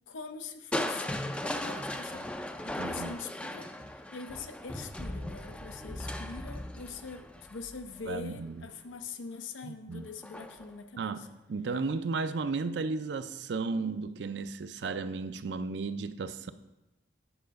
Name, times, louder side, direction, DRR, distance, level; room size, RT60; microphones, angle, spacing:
voice 1, 0.1-2.3 2.6-11.3, left 4 dB, 90° left, 8 dB, 0.7 m, -43 dB
Crushing, 0.7-8.7 10.2-10.7 11.2-11.3, left 1 dB, 5° left, 0.3 m, -38 dB
voice 2, 2.8-3.1 8.0-8.6 9.6-10.1 11.0-11.2 11.5-16.5, right 4 dB, 65° right, 11 dB, 0.4 m, -34 dB
8.9 x 4.6 x 5.2 m, 0.97 s
head